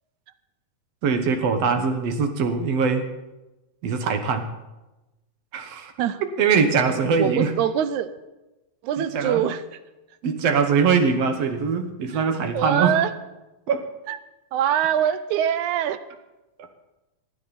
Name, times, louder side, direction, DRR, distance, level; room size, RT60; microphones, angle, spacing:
voice 1, 1.0-3.1 3.8-4.5 5.5-5.9 6.4-7.5 9.0-9.4 10.2-13.0 13.7-13.9, right 5 dB, 60° right, 7 dB, 2.1 m, -22 dB
voice 2, 7.2-8.1 8.8-9.8 12.1-12.2 12.5-13.1 14.1-14.2 14.5-16.0, right 10 dB, 75° right, 13 dB, 2.0 m, -23 dB
27.0 x 9.3 x 4.2 m, 1.0 s
omnidirectional pair, 3.6 m